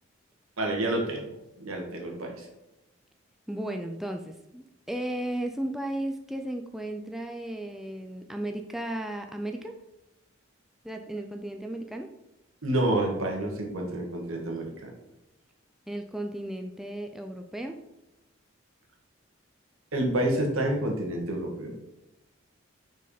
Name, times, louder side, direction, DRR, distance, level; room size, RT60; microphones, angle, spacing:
voice 1, 0.6-1.2 1.6-2.3 12.6-14.9 19.9-21.8, right 1 dB, 85° right, 0 dB, 1.8 m, -28 dB
voice 2, 3.5-9.8 10.8-12.1 15.9-17.8, right 1 dB, ahead, 4 dB, 0.4 m, -35 dB
6.3 x 4.7 x 5.0 m, 0.94 s
head